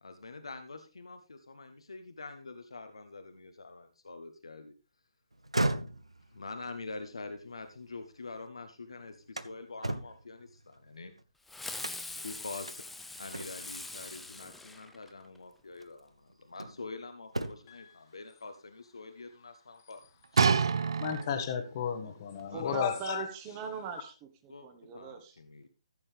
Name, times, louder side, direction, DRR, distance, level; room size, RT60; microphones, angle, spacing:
voice 1, 0.0-4.7 6.3-11.1 12.1-12.8 13.2-20.0 20.3-21.3 22.0-22.1 22.5-22.8 24.5-24.7 24.9-25.7, left 3 dB, 70° left, 8 dB, 1.0 m, -45 dB
sound 1, 5.3-8.5 8.9-11.2 11.8-12.3 12.7-12.8 13.3-13.8 15.1-15.2 15.8-16.9 17.2-17.8, right 1 dB, 85° right, 0.8 m, -37 dB
Fireworks, 11.5-15.4, left 2 dB, 5° left, 0.6 m, -43 dB
sound 2, 20.4-21.6 22.4-22.5, right 6 dB, 55° right, 0.5 m, -27 dB
voice 2, 21.0-23.3, left 7 dB, 35° left, 8 dB, 1.3 m, -33 dB
voice 3, 22.5-25.4, right 6 dB, 25° right, 7 dB, 1.3 m, -41 dB
14.0 x 7.2 x 3.4 m, 0.31 s
figure-of-eight pair, 140°, 3 cm